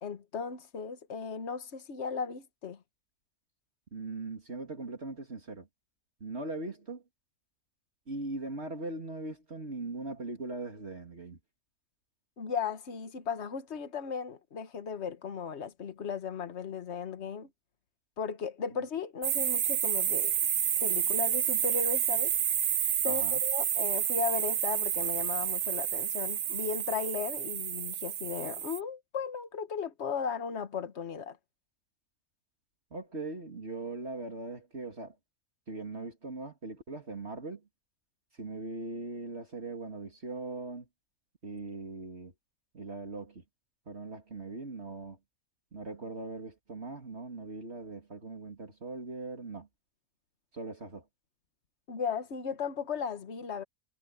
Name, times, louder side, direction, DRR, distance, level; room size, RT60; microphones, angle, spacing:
voice 1, 0.0-2.8 12.4-17.5 18.2-20.3 20.8-22.3 23.0-31.4 51.9-53.6, left 6 dB, 50° left, 1.6 m, -36 dB
voice 2, 3.9-5.7 6.2-7.0 8.1-11.4 18.7-18.8 23.0-23.4 32.9-35.2 35.7-37.6 38.3-40.9 41.4-42.3 42.7-43.4 43.9-45.2 45.7-49.7 50.5-51.1, right 3 dB, 45° right, 2.9 m, -40 dB
sound 1, 19.2-28.8, right 9 dB, 75° right, 1.4 m, -30 dB
omnidirectional pair, 1.5 m